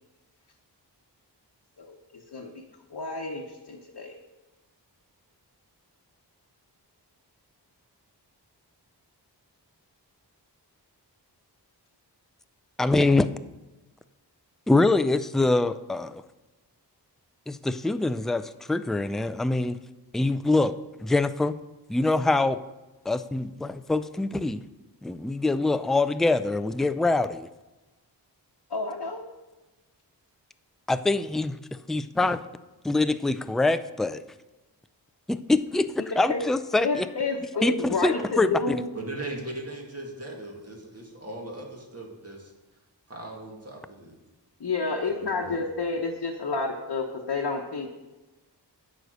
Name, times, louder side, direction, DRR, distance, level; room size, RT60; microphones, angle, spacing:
voice 1, 1.8-2.6 2.9-4.2 28.7-29.2 36.0-38.9 44.6-47.9, left 3 dB, 60° left, -2 dB, 1.0 m, -30 dB
voice 2, 12.8-13.3 14.7-16.2 17.5-19.8 20.1-20.7 21.0-21.6 21.9-22.6 23.1-24.6 25.0-27.5 30.9-31.6 31.9-32.4 32.8-34.2 35.3-37.1 37.6-38.5, left 2 dB, ahead, 12 dB, 0.3 m, -24 dB
voice 3, 38.9-42.5 43.1-44.1 45.2-45.6, right 2 dB, 35° right, -1 dB, 2.2 m, -39 dB
9.3 x 5.0 x 6.4 m, 1.1 s
cardioid pair, 40°, 42 cm